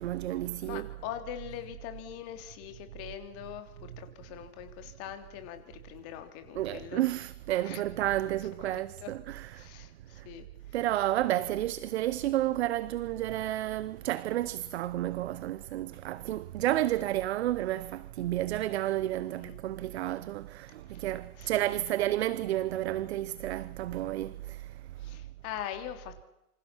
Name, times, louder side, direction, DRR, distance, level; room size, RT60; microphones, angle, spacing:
voice 1, 0.0-0.9 6.6-9.7 10.2-10.3 10.7-24.7, right 14 dB, 45° right, 1.0 m, -31 dB
voice 2, 0.6-7.0 7.6-7.8 8.6-9.1 9.5-10.4 11.3-11.5 19.2-19.6 20.9-21.0 21.4-21.5 25.0-26.2, left 11 dB, 30° left, 3.4 m, -43 dB
27.5 x 26.0 x 6.2 m
hypercardioid pair, 130°, 45 cm